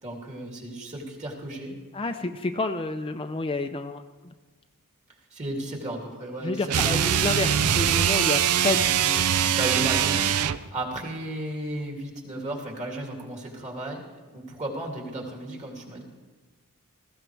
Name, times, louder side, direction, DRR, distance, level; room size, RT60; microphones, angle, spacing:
voice 1, 0.0-1.8 5.3-7.2 9.5-10.2 10.7-14.0 14.3-16.0, right 1 dB, 30° right, -1 dB, 2.8 m, -34 dB
voice 2, 1.9-4.0 6.4-9.3, left 3 dB, 25° left, 6 dB, 0.5 m, -29 dB
sound 1, 6.7-10.7, right 9 dB, 80° right, 0.5 m, -22 dB
18.5 x 15.5 x 3.4 m, 1.3 s
head